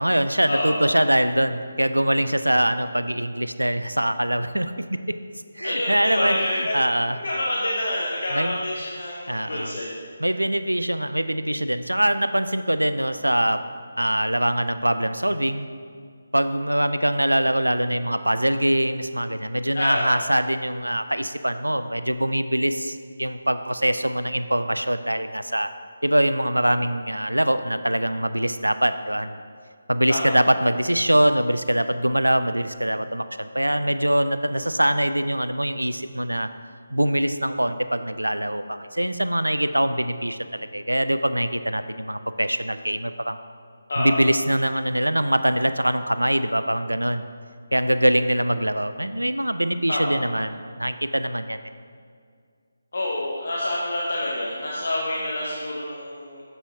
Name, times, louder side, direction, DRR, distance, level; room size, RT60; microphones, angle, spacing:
voice 1, 0.0-5.2 5.5-7.2 8.3-8.6 9.3-9.8 10.2-13.6 14.0-15.7 16.3-25.7 26.0-29.4 29.9-36.5 36.9-43.4 44.0-47.2 47.7-51.6, right 1 dB, 85° right, 11 dB, 0.3 m, -23 dB
voice 2, 5.6-6.8 7.2-9.9 19.7-20.1 30.1-30.2 43.9-44.2 49.9-50.0 52.9-56.4, left 1 dB, 55° left, -4 dB, 0.9 m, -27 dB
7.2 x 6.9 x 2.8 m, 2.1 s
figure-of-eight pair, 150°, 0 cm